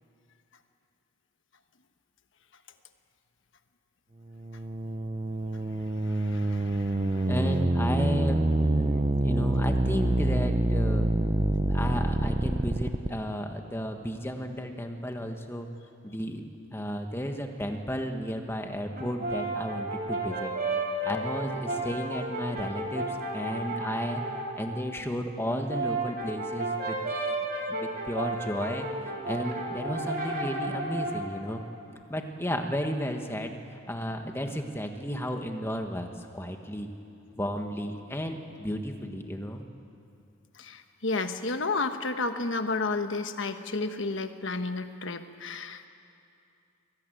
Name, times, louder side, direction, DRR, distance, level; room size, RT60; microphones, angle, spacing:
sound 1, 4.3-13.1, right 2 dB, 25° right, 0.6 m, -26 dB
voice 1, 6.0-7.3 40.5-45.9, left 3 dB, 60° left, 8 dB, 1.3 m, -32 dB
voice 2, 7.3-11.1 11.7-15.7 16.0-20.5 21.0-24.2 24.6-27.0 27.7-28.9 29.3-31.6 32.1-36.9 37.4-39.6, equal, 10° left, 4 dB, 1.5 m, -33 dB
Brass instrument, 18.9-24.5 25.4-31.3, right 2 dB, 45° right, 3.9 m, -33 dB
25.5 x 18.5 x 9.2 m, 2.6 s
head